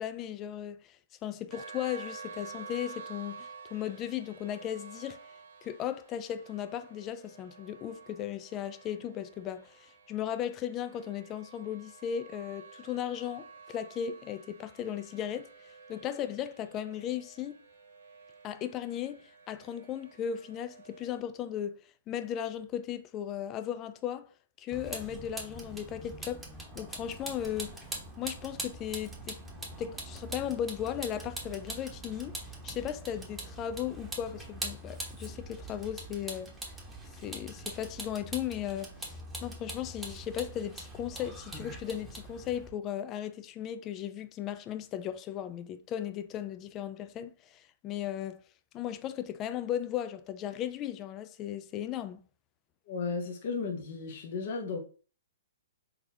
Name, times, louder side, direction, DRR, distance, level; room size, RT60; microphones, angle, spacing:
voice 1, 0.0-5.2 5.6-15.5 15.9-17.6 18.4-21.8 22.1-24.3 24.6-26.4 26.7-27.7 28.2-29.4 29.8-36.5 37.2-39.1 39.4-48.4 48.7-52.2, left 10 dB, 25° left, 0.4 m, -36 dB
sound 1, 1.5-21.2, right 5 dB, 55° right, 0.7 m, -51 dB
Vehicle, 24.7-42.7, right 2 dB, 10° right, 1.0 m, -43 dB
voice 2, 52.9-54.8, left 4 dB, 50° left, 0.9 m, -34 dB
4.1 x 3.9 x 2.7 m
figure-of-eight pair, 120°, 0 cm